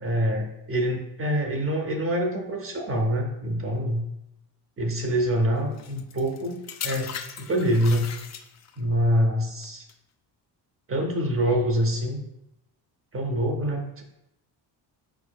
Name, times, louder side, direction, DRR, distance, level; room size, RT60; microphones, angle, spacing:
voice 1, 0.0-4.1 4.8-8.1 8.8-9.9 10.9-12.2 13.1-14.0, equal, 30° right, 3 dB, 0.7 m, -25 dB
sound 1, 5.8-8.8 9.6-9.9, left 8 dB, 40° left, 0.4 m, -38 dB
4.7 x 4.7 x 2.3 m, 0.84 s
cardioid pair, 110°, 44 cm